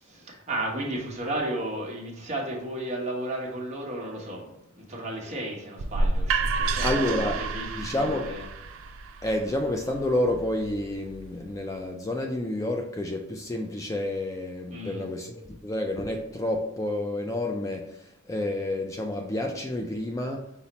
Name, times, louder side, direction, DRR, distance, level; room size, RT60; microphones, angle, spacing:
voice 1, 0.0-7.1 7.4-8.5 14.7-15.1, right 1 dB, 35° right, 1.0 m, -34 dB
sound 1, 5.8-11.6, right 3 dB, 75° right, 0.4 m, -30 dB
voice 2, 6.8-7.4 7.8-8.3 9.2-20.5, left 1 dB, 15° left, 0.3 m, -29 dB
5.6 x 2.0 x 4.0 m
head